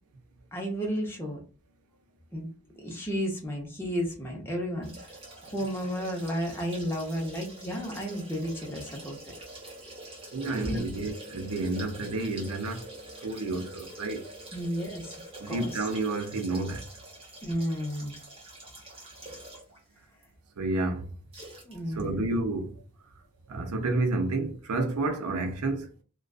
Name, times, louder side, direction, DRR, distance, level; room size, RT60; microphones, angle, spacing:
voice 1, 0.5-1.4 2.3-2.5 2.8-4.9 5.5-9.2 10.5-10.9 14.5-15.1 15.5-15.7 17.4-18.1 21.6-22.2, equal, 10° left, 0.7 m, -32 dB
sound 1, 4.8-19.8 20.2-20.3 21.3-21.7 22.0-22.1, right 1 dB, 25° right, 0.8 m, -46 dB
voice 2, 10.3-12.9 13.2-14.2 15.4-16.9 20.6-21.1 22.0-22.7 23.5-25.9, right 2 dB, 90° right, 0.5 m, -30 dB
2.4 x 2.2 x 2.3 m
head